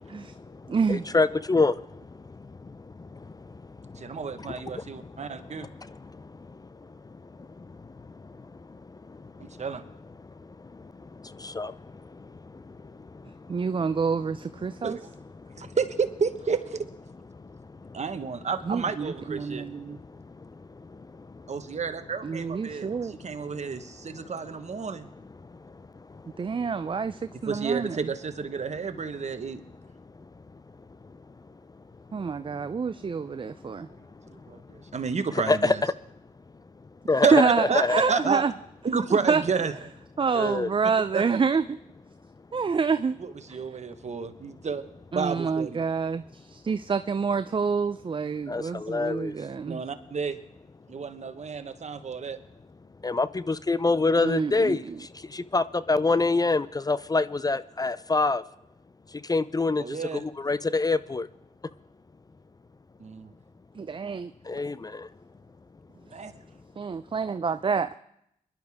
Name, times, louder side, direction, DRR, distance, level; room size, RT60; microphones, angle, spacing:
voice 1, 0.0-5.1 5.6-6.6 7.1-9.6 10.4-13.7 15.5-15.8 17.4-18.0 20.1-21.5 22.8-23.5 25.6-25.8 26.1-26.6 35.5-35.7 37.1-38.0 40.3-40.7 48.5-49.4 53.0-58.4 59.1-61.3 64.4-65.1, left 3 dB, 25° left, 16 dB, 0.5 m, -28 dB
voice 2, 0.7-1.0 13.5-15.0 18.7-20.0 22.2-23.1 26.4-28.0 32.1-33.9 37.3-38.5 39.3-39.4 40.2-41.6 42.5-43.2 45.1-49.8 54.2-55.0 63.8-64.3 66.8-68.0, right 5 dB, 35° right, 12 dB, 0.5 m, -27 dB
voice 3, 4.0-5.7 9.4-9.8 14.8-15.1 15.6-16.9 17.9-19.6 21.5-25.1 27.5-29.6 34.3-35.8 37.2-37.4 37.7-38.4 38.8-39.7 41.1-41.4 43.2-44.8 45.1-45.8 48.9-49.0 49.7-50.4 50.9-52.4 59.8-60.3 63.0-63.3 66.1-66.3, right 5 dB, 50° right, 9 dB, 1.2 m, -30 dB
22.0 x 11.5 x 3.5 m, 0.78 s
supercardioid pair, 45°, 15 cm